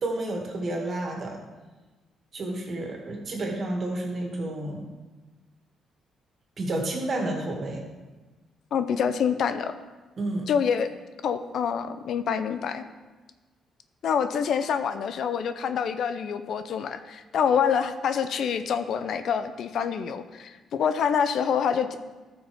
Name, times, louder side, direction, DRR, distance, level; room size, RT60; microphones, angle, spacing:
voice 1, 0.0-1.4 2.3-4.8 6.6-7.8 10.2-10.4, right 2 dB, 50° right, 0 dB, 2.4 m, -30 dB
voice 2, 8.7-9.8 10.5-10.9 11.2-12.9 14.0-22.0, left 7 dB, 70° left, 10 dB, 0.6 m, -26 dB
14.0 x 6.2 x 3.6 m, 1.2 s
cardioid pair, 90°, 0 cm